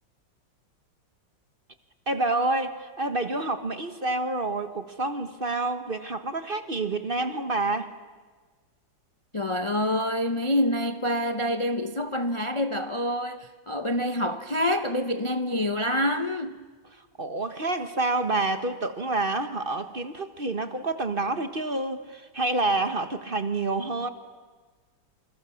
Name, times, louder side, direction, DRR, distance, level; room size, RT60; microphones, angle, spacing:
voice 1, 2.1-7.9 16.9-24.1, right 2 dB, 30° right, 1.2 m, -28 dB
voice 2, 9.3-16.7, left 1 dB, 35° left, 0.4 m, -27 dB
28.0 x 27.5 x 7.1 m
omnidirectional pair, 2.2 m